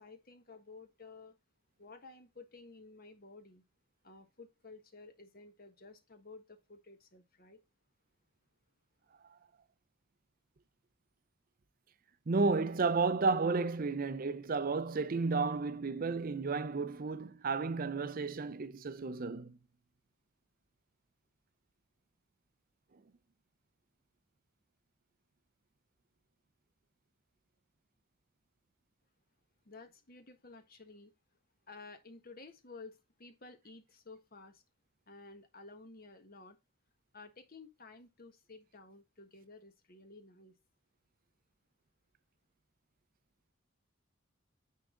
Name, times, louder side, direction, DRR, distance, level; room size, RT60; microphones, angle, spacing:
voice 1, 0.0-1.3 1.8-3.6 4.0-7.6 29.6-31.1 31.7-34.6 35.1-36.6 37.1-40.5, left 3 dB, 45° left, 1.4 m, -53 dB
voice 2, 12.3-19.6, right 4 dB, 40° right, 0.5 m, -32 dB
9.6 x 3.7 x 3.8 m
head